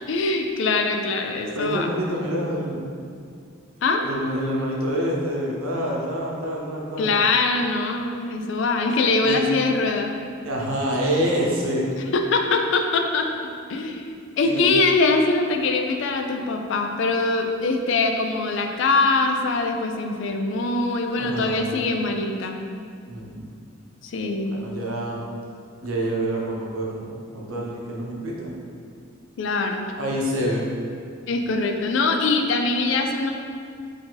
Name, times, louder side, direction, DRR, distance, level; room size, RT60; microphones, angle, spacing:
voice 1, 0.1-1.9 3.8-4.0 7.0-10.1 11.9-13.3 13.7-22.6 24.0-24.7 29.4-29.9 31.3-33.3, left 3 dB, 60° left, 4 dB, 0.4 m, -23 dB
voice 2, 1.5-3.0 4.0-7.1 9.2-9.4 10.4-11.9 14.4-14.8 21.1-21.8 23.1-23.5 24.5-25.2 25.8-27.1 27.3-28.6 30.0-30.7, equal, 85° right, -3 dB, 0.8 m, -27 dB
4.5 x 2.7 x 3.9 m, 2.3 s
head